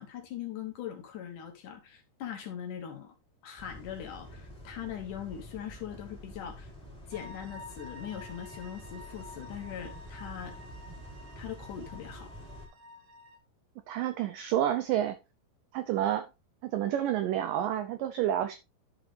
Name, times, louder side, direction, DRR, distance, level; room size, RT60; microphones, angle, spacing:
voice 1, 0.0-3.1 3.4-6.7 7.1-10.6 11.4-12.3, left 9 dB, 65° left, 2.2 m, -41 dB
sound 1, 3.6-12.7, equal, ahead, 3.2 m, -47 dB
sound 2, 7.1-13.4, left 2 dB, 60° right, 3.0 m, -50 dB
voice 2, 13.9-15.2 15.7-16.3 16.6-18.6, right 11 dB, 85° right, 1.9 m, -29 dB
11.0 x 6.0 x 3.2 m
omnidirectional pair, 4.7 m